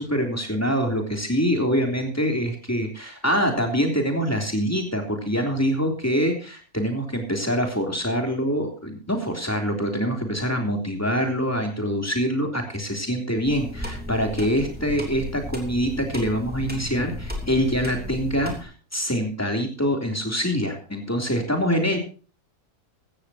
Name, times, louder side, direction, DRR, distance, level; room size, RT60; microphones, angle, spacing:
voice 1, 0.0-22.0, equal, 10° left, 2 dB, 3.3 m, -25 dB
sound 1, 13.4-18.6, left 1 dB, 5° right, 3.2 m, -35 dB
15.5 x 14.5 x 2.9 m, 0.37 s
omnidirectional pair, 1.5 m